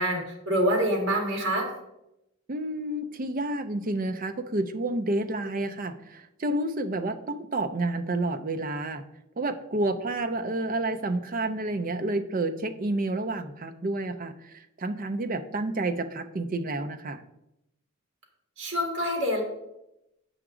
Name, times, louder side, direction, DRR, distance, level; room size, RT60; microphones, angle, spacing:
voice 1, 0.0-1.7 18.6-19.4, equal, 55° right, 1 dB, 1.8 m, -26 dB
voice 2, 2.5-9.0 9.4-17.2, right 2 dB, 40° right, 8 dB, 0.5 m, -30 dB
7.9 x 5.9 x 3.7 m, 0.87 s
head